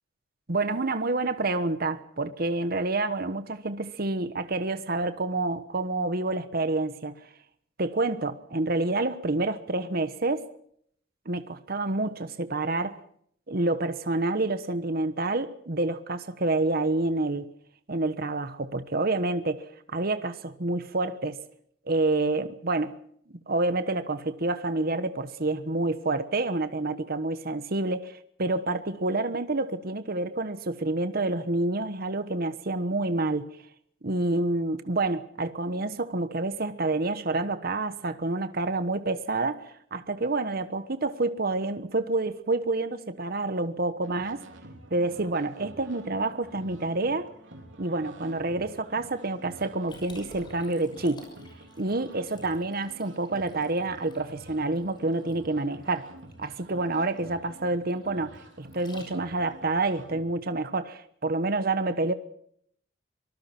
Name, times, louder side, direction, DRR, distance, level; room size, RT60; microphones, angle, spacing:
voice 1, 0.5-7.2 7.8-10.5 11.3-13.0 13.5-17.5 17.9-21.4 21.9-22.9 23.5-33.5 34.0-44.5 44.9-47.3 47.8-51.2 51.8-56.1 56.4-62.1, right 2 dB, 50° right, 1.1 m, -28 dB
sound 1, 44.0-60.2, right 1 dB, 70° right, 3.6 m, -49 dB
Liquid, 49.9-59.5, left 2 dB, 25° left, 6.4 m, -53 dB
25.0 x 19.0 x 6.0 m
head